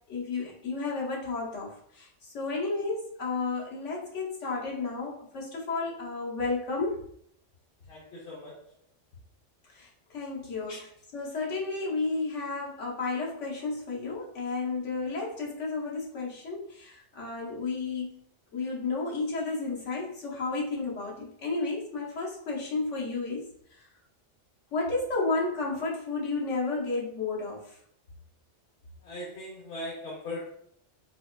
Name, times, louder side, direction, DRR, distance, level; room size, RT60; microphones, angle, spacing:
voice 1, 0.1-7.0 9.7-18.2 18.5-23.5 23.8-23.9 24.7-27.8, left 3 dB, 85° left, -4 dB, 1.3 m, -32 dB
voice 2, 7.9-8.6 10.7-10.8 29.0-30.5, left 1 dB, 70° left, -5 dB, 1.0 m, -39 dB
4.1 x 2.2 x 2.3 m, 0.67 s
omnidirectional pair, 1.2 m